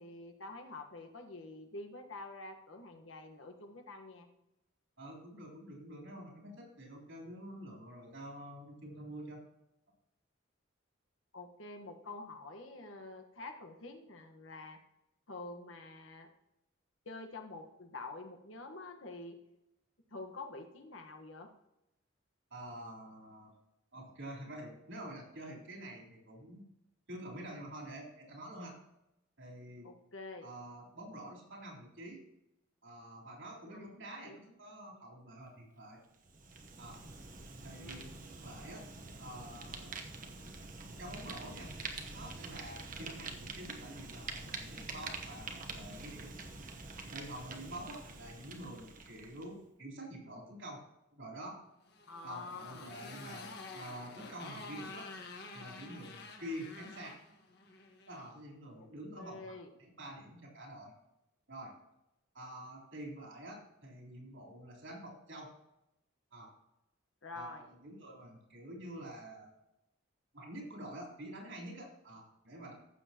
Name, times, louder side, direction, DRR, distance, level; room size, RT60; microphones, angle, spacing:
voice 1, 0.0-4.3 11.3-14.8 15.3-16.3 17.0-19.4 20.1-21.5 29.8-30.5 33.7-33.9 34.3-34.5 37.8-38.1 52.1-52.9 58.8-58.9 59.2-59.7 67.2-67.7, left 2 dB, 80° left, 5 dB, 1.3 m, -47 dB
voice 2, 5.0-9.4 22.5-23.5 23.9-26.6 27.1-28.8 29.4-29.9 30.4-32.2 32.8-36.0 36.8-37.0 37.6-38.1 38.4-38.8 39.2-39.9 41.0-41.7 42.1-46.3 47.1-50.8 51.1-51.6 52.2-55.1 55.5-57.2 58.1-59.5 59.8-60.9 61.5-61.7 62.3-65.5 66.3-66.5 67.3-69.5 70.3-72.7, right 1 dB, 70° right, -2 dB, 3.6 m, -47 dB
Fire, 36.2-49.5, right 3 dB, 40° right, 1.0 m, -46 dB
Motorcycle, 51.8-58.3, left 3 dB, 55° left, 1.5 m, -49 dB
15.0 x 7.3 x 2.9 m, 0.90 s
head